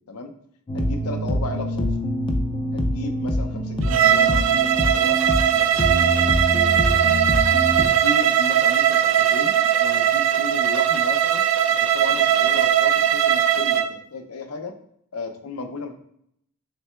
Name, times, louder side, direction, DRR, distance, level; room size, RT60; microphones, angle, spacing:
voice 1, 0.7-1.9 2.7-5.2 5.5-7.2 7.8-11.4 11.7-14.8 15.1-16.1, left 2 dB, 80° left, 5 dB, 0.6 m, -35 dB
sound 1, 0.7-7.9, left 1 dB, 20° left, 0.3 m, -25 dB
Bowed string instrument, 3.8-13.9, right 9 dB, 60° right, 0.3 m, -19 dB
5.8 x 3.3 x 2.3 m, 0.71 s
head